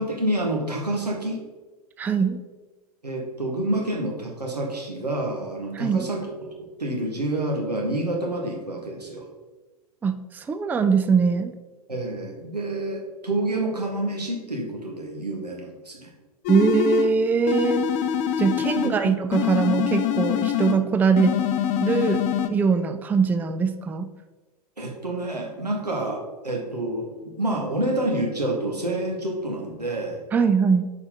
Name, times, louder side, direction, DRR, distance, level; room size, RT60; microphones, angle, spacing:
voice 1, 0.0-1.4 3.0-9.3 11.9-16.1 18.8-18.9 24.8-30.2, right 1 dB, 90° right, 0 dB, 1.8 m, -28 dB
voice 2, 2.0-2.4 5.7-6.1 10.0-11.6 16.5-17.9 18.4-21.4 21.8-22.2 22.5-24.1 30.3-30.9, right 5 dB, 10° right, 9 dB, 0.4 m, -22 dB
sound 1, 16.5-17.1 17.5-19.0 19.3-20.8 21.2-22.5, left 10 dB, 40° left, 0.7 m, -24 dB
8.7 x 4.7 x 3.8 m, 1.2 s
figure-of-eight pair, 95°, 20 cm